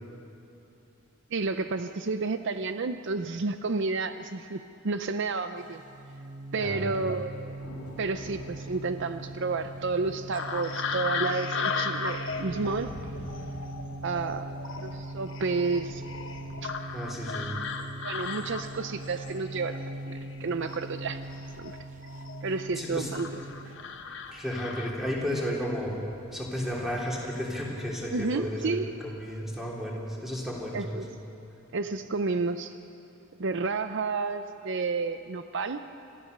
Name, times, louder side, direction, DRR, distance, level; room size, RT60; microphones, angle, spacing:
voice 1, 1.3-5.8 6.5-7.6 8.0-13.0 14.0-16.0 16.6-16.7 18.0-21.2 21.6-21.8 22.4-23.4 28.1-28.9 30.7-31.0 31.7-32.8 33.4-35.8, right 4 dB, 55° right, 10 dB, 0.6 m, -31 dB
sound 1, 5.6-23.8, right 2 dB, 35° right, 0.9 m, -41 dB
voice 2, 6.6-7.1 16.9-17.6 22.8-23.1 24.3-26.0 26.3-28.8 29.1-31.0, equal, ahead, -4 dB, 3.4 m, -33 dB
sound 2, 7.3-27.2, left 1 dB, 80° left, 2.6 m, -50 dB
sound 3, 10.3-20.3 20.6-22.6 23.1-25.4 26.6-26.8 27.3-27.8 28.0-28.3, left 5 dB, 60° left, 1.2 m, -37 dB
27.0 x 14.5 x 6.7 m, 2.9 s
head